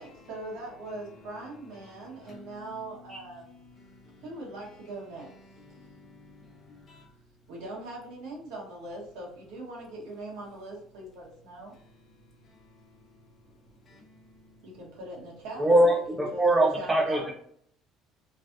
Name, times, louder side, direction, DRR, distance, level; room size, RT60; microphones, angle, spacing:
voice 1, 0.0-3.4 4.2-5.3 7.5-11.7 14.6-16.0 16.3-16.5 16.7-17.3, right 2 dB, 75° right, 1.4 m, -41 dB
voice 2, 0.9-4.9 5.2-7.1 11.7-11.8 12.5-13.0 13.9-14.6, left 2 dB, 25° left, 1.0 m, -54 dB
voice 3, 15.6-17.3, right 1 dB, 10° right, 0.4 m, -22 dB
3.2 x 2.4 x 2.6 m
cardioid pair, 160°, 0 cm